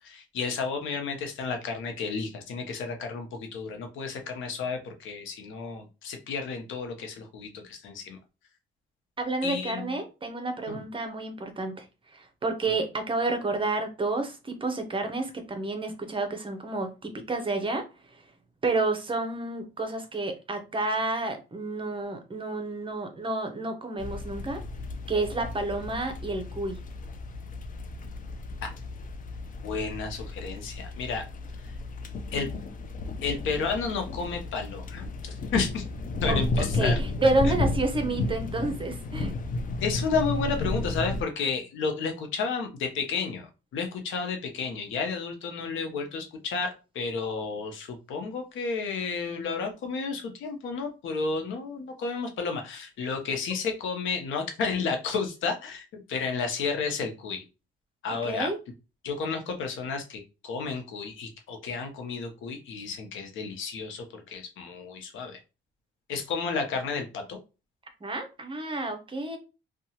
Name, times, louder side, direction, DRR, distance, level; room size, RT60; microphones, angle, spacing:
voice 1, 0.0-8.2 9.4-9.9 10.7-10.8 12.7-12.8 28.6-28.7 29.6-31.3 32.3-32.5 33.2-35.8 36.2-37.0 37.4-37.5 39.8-57.4 58.0-58.5 59.0-65.4 66.1-67.4, left 5 dB, 80° left, 0.8 m, -32 dB
voice 2, 9.2-11.8 12.1-17.8 18.6-24.6 25.1-26.8 36.3-39.3 58.2-58.6 68.0-69.4, right 2 dB, 25° right, 0.7 m, -30 dB
sound 1, 24.0-41.2, left 2 dB, 45° left, 0.5 m, -33 dB
2.8 x 2.3 x 2.8 m
cardioid pair, 90°, 20 cm